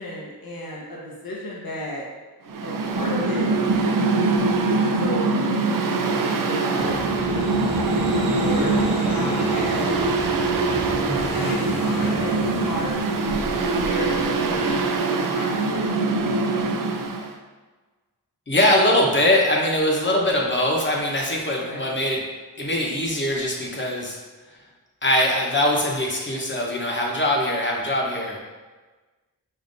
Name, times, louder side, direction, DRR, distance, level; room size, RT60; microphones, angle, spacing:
voice 1, 0.0-2.0 2.6-3.5 4.6-5.8 6.4-8.8 9.1-10.0 11.3-13.5 13.8-15.9 21.5-21.8, left 1 dB, 70° left, -4 dB, 1.0 m, -34 dB
Mechanical fan, 2.5-17.3, right 3 dB, 60° right, 0.5 m, -23 dB
sound 1, 6.8-14.8, right 1 dB, 15° right, 1.1 m, -32 dB
voice 2, 18.5-22.2 22.6-24.2 25.0-28.4, left 1 dB, 30° left, -2 dB, 1.0 m, -22 dB
5.4 x 2.7 x 2.6 m, 1.3 s
cardioid pair, 55°, 37 cm